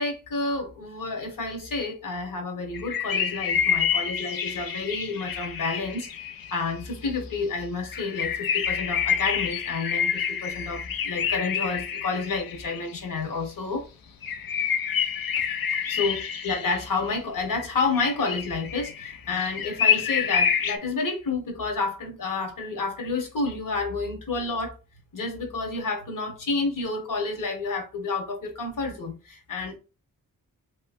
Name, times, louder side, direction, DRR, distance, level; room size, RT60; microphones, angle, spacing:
voice 1, 0.0-6.1 6.5-13.9 15.4-15.5 15.9-24.7 25.1-29.8, left 3 dB, 70° left, 1.4 m, -30 dB
sound 1, 2.7-7.1 7.9-13.0 14.2-17.0 17.5-20.8, left 7 dB, 85° left, 0.6 m, -28 dB
3.2 x 3.0 x 2.5 m
wide cardioid pair, 100°, 34 cm